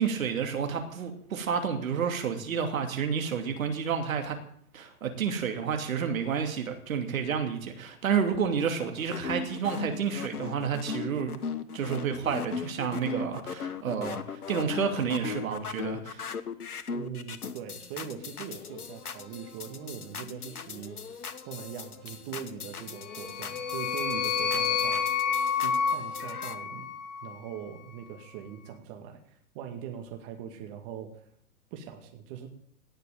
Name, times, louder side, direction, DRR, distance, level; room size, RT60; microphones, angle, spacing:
voice 1, 0.0-4.4 4.7-11.3 11.7-16.3, right 7 dB, 65° right, 5 dB, 2.7 m, -30 dB
sound 1, 8.8-26.6, left 5 dB, 80° left, 1.3 m, -38 dB
voice 2, 16.9-25.1 25.6-26.9 27.2-31.3 31.7-32.5, right 8 dB, 35° right, 4 dB, 2.2 m, -41 dB
sound 2, 23.0-27.4, left 7 dB, 30° left, 1.3 m, -29 dB
18.0 x 6.7 x 9.0 m, 0.64 s
figure-of-eight pair, 120°, 45 cm